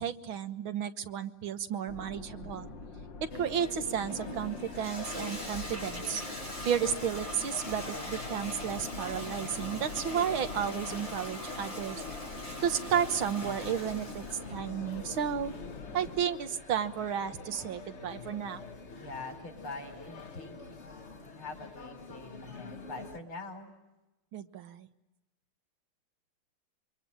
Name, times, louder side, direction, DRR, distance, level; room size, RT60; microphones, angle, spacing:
voice 1, 0.0-2.7 3.3-6.2 6.7-12.0 12.6-14.2 14.5-15.5 15.9-18.6 24.3-24.9, right 8 dB, 75° right, 10 dB, 2.0 m, -32 dB
sound 1, 1.9-16.3, left 4 dB, 65° left, 2.1 m, -46 dB
sound 2, 3.3-23.2, left 3 dB, 35° left, 1.6 m, -46 dB
Toilet flush, 3.6-14.6, left 1 dB, 15° left, 8.2 m, -42 dB
voice 2, 18.9-23.7, left 3 dB, 85° left, 6 dB, 5.1 m, -44 dB
27.0 x 24.5 x 8.8 m, 1.0 s
omnidirectional pair, 2.3 m